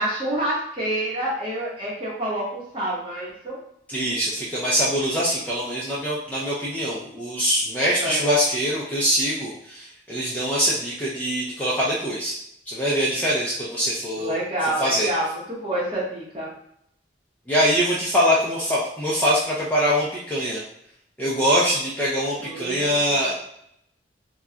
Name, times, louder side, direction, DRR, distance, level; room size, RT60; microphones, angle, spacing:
voice 1, 0.0-3.6 8.0-8.2 14.2-16.5 22.4-23.3, right 1 dB, 25° right, -7 dB, 1.0 m, -28 dB
voice 2, 3.9-12.3 12.7-14.4 14.8-15.1 17.5-20.6 21.2-23.3, equal, 10° left, -7 dB, 0.4 m, -23 dB
2.3 x 2.2 x 3.7 m, 0.72 s
head